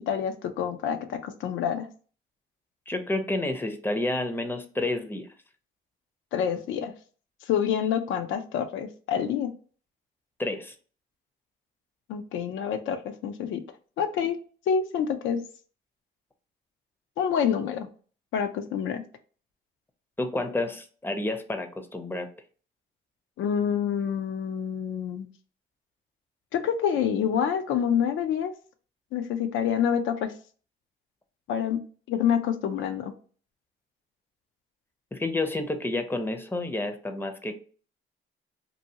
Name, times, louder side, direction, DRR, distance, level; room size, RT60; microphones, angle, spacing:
voice 1, 0.1-1.9 6.3-6.9 7.5-9.5 12.1-13.6 14.0-14.4 14.7-15.4 17.2-17.9 18.3-19.0 23.4-25.3 26.5-28.5 29.1-30.3 31.5-31.8 32.1-33.1, left 8 dB, 80° left, 9 dB, 0.5 m, -27 dB
voice 2, 2.9-5.3 10.4-10.7 20.2-22.3 35.1-37.5, left 2 dB, 10° left, 6 dB, 0.5 m, -30 dB
2.7 x 2.6 x 2.7 m, 0.41 s
cardioid pair, 90°, 20 cm